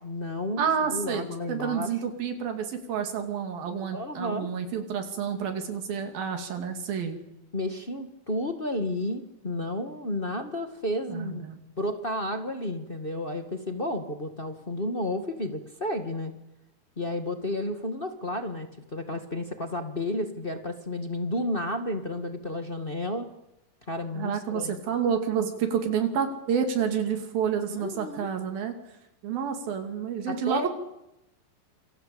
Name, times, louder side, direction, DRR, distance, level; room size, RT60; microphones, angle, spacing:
voice 1, 0.0-1.9 3.9-4.5 7.5-11.5 11.8-16.3 17.0-23.3 23.9-24.7 27.7-28.3 29.3-29.5 30.3-30.7, left 1 dB, 30° left, 6 dB, 1.0 m, -32 dB
voice 2, 0.6-1.2 1.5-7.2 11.1-11.6 24.1-28.7 29.2-30.7, right 7 dB, 90° right, 5 dB, 4.5 m, -29 dB
27.5 x 24.5 x 8.6 m, 0.88 s
omnidirectional pair, 4.0 m